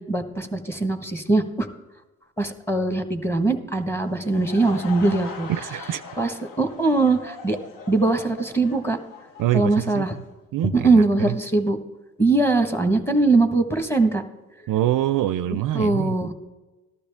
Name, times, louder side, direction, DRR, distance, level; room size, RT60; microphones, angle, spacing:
voice 1, 0.1-1.7 2.4-5.5 6.2-7.6 7.9-9.0 9.5-10.2 10.7-11.8 12.2-14.2 15.7-16.3, right 3 dB, 5° left, 6 dB, 1.4 m, -21 dB
Laughter / Crowd, 4.0-10.3, left 4 dB, 60° left, 1.2 m, -40 dB
voice 2, 5.5-6.0 9.4-10.0 10.5-11.3 14.7-16.1, right 13 dB, 60° right, 13 dB, 0.5 m, -24 dB
14.0 x 12.0 x 3.5 m, 1.2 s
supercardioid pair, 55°, 37 cm